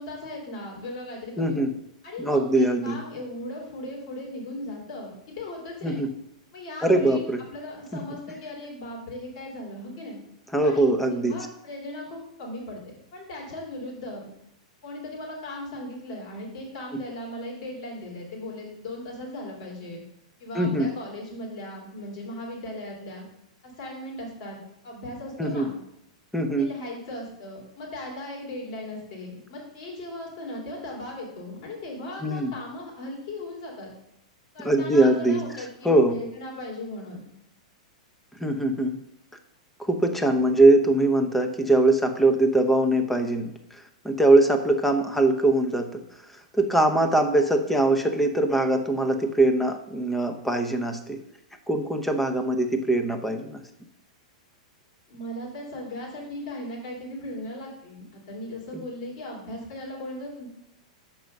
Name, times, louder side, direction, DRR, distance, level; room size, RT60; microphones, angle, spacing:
voice 1, 0.0-1.6 2.0-6.0 6.5-10.2 10.6-14.3 14.8-20.0 20.4-23.2 23.6-25.8 26.6-33.9 34.5-37.2 55.1-60.5, left 1 dB, 60° left, -2 dB, 2.9 m, -38 dB
voice 2, 1.4-1.7 2.2-3.0 5.8-6.1 6.8-7.4 7.9-8.0 10.5-11.4 16.9-17.0 20.5-20.9 25.4-25.7 26.3-26.7 32.2-32.5 34.6-35.4 35.8-36.1 38.4-39.0 39.8-43.5 44.0-46.0 46.5-51.2 51.7-53.6, right 2 dB, 5° left, 7 dB, 0.7 m, -22 dB
6.2 x 4.7 x 5.2 m, 0.78 s
hypercardioid pair, 125°, 4 cm